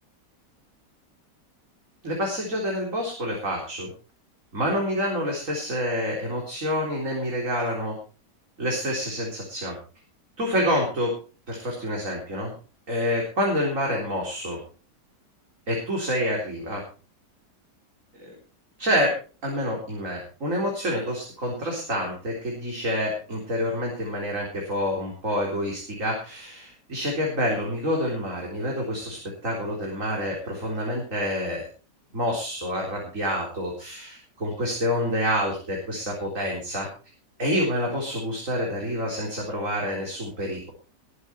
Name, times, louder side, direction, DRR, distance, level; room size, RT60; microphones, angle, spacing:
voice 1, 2.0-3.9 4.5-7.9 8.6-9.8 10.4-11.2 11.5-12.5 12.9-14.6 15.7-16.8 18.2-18.3 18.8-19.2 19.4-31.7 32.1-36.9 37.4-40.7, equal, 45° right, -1 dB, 4.2 m, -27 dB
20.5 x 8.5 x 4.4 m, 0.37 s
omnidirectional pair, 1.9 m